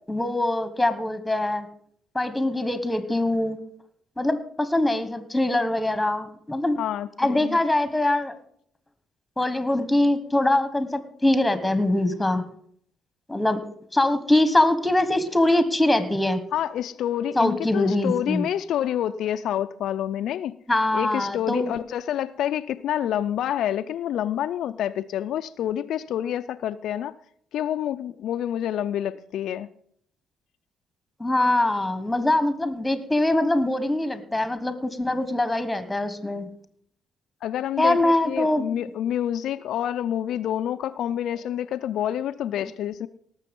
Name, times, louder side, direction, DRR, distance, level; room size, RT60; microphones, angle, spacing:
voice 1, 0.1-1.7 2.1-3.6 4.2-6.8 7.2-8.3 9.4-12.5 13.3-13.6 13.9-16.4 17.3-18.5 20.7-21.7 31.2-36.5 37.8-38.7, left 1 dB, 5° left, 12 dB, 1.3 m, -23 dB
voice 2, 6.8-7.6 16.5-20.6 20.9-27.1 27.5-29.7 37.4-43.1, left 10 dB, 75° left, 9 dB, 0.4 m, -28 dB
18.5 x 6.8 x 5.3 m, 0.64 s
cardioid pair, 100°, 0 cm